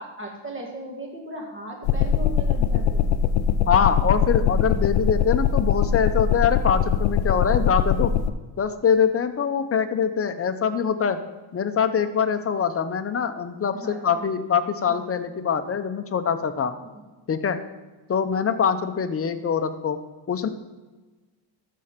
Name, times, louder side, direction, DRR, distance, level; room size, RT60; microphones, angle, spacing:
voice 1, 0.0-3.1 13.7-14.3 14.9-15.0 16.8-17.0, right 1 dB, 25° right, 0 dB, 2.3 m, -37 dB
sound 1, 1.8-8.3, left 7 dB, 65° left, 0.7 m, -22 dB
voice 2, 3.7-8.1 8.6-11.2 11.5-16.7 17.3-17.6 18.1-20.0 20.3-20.5, left 7 dB, 30° left, 9 dB, 0.7 m, -23 dB
13.0 x 4.4 x 5.1 m, 1.2 s
cardioid pair, 105°, 49 cm